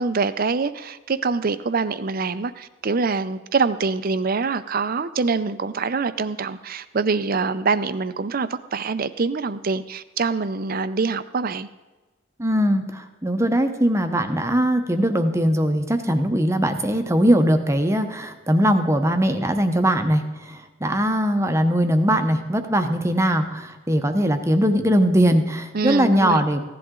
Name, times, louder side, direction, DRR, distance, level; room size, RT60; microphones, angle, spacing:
voice 1, 0.0-11.7 25.7-26.4, right 4 dB, 45° right, 14 dB, 0.5 m, -25 dB
voice 2, 12.4-26.6, equal, 15° right, 7 dB, 0.8 m, -20 dB
16.0 x 11.0 x 3.8 m, 1.2 s
head